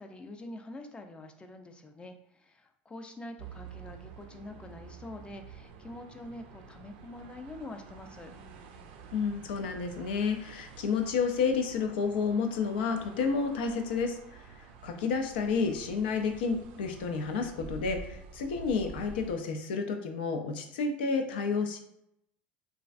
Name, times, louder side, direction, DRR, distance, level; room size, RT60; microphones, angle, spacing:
voice 1, 0.0-8.3, left 2 dB, 20° left, 6 dB, 0.4 m, -45 dB
sound 1, 3.4-19.4, right 5 dB, 70° right, 0.4 m, -49 dB
voice 2, 9.1-21.8, left 5 dB, 80° left, 5 dB, 0.4 m, -30 dB
3.1 x 2.4 x 2.4 m, 0.77 s
hypercardioid pair, 85°, 5 cm